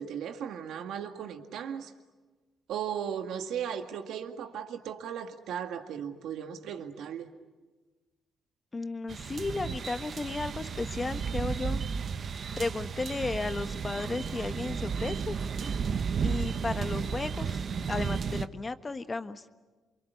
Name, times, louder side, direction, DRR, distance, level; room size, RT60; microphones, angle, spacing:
voice 1, 0.0-1.9 2.7-7.3, right 8 dB, 80° right, 6 dB, 2.0 m, -36 dB
voice 2, 8.7-11.8 12.6-15.4 16.2-17.6 17.9-19.4, left 3 dB, 25° left, 10 dB, 1.4 m, -34 dB
sound 1, 9.1-18.5, right 6 dB, 50° right, 0.9 m, -33 dB
28.0 x 24.5 x 8.5 m, 1.3 s
cardioid pair, 90°, 0 cm